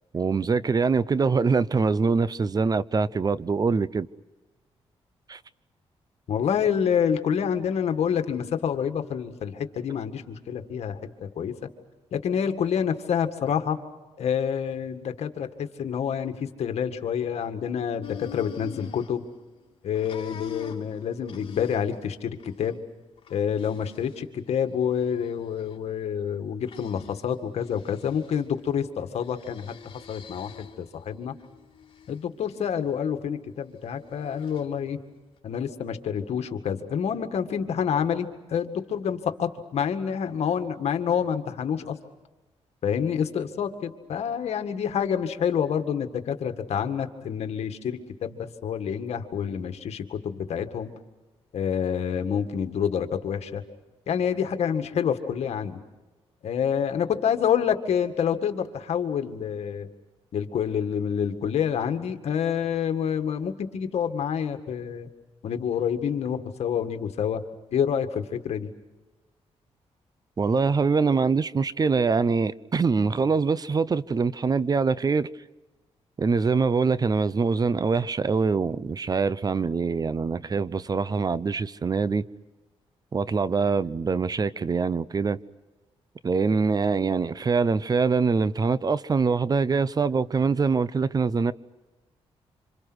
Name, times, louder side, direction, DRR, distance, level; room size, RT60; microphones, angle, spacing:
voice 1, 0.1-4.1 5.3-5.4 70.4-75.3 76.2-82.3 83.1-85.4 86.2-91.5, right 4 dB, 35° right, 0.7 m, -24 dB
voice 2, 6.3-11.6 12.1-13.8 14.2-19.2 19.8-22.8 23.3-29.8 30.1-31.3 32.1-35.0 35.4-42.0 42.8-50.9 51.5-53.6 54.1-55.8 56.4-59.9 60.3-65.1 65.4-67.4 67.7-68.7, left 8 dB, 75° left, 1.9 m, -28 dB
sound 1, 18.0-19.6 19.9-22.0 22.4-22.7 23.2-24.2 24.9-25.8 26.7-27.3 27.6-28.4 29.2-30.9 31.4-32.2 34.0-34.7, left 7 dB, 55° left, 3.0 m, -44 dB
27.0 x 26.5 x 6.3 m
cardioid pair, 85°, 11 cm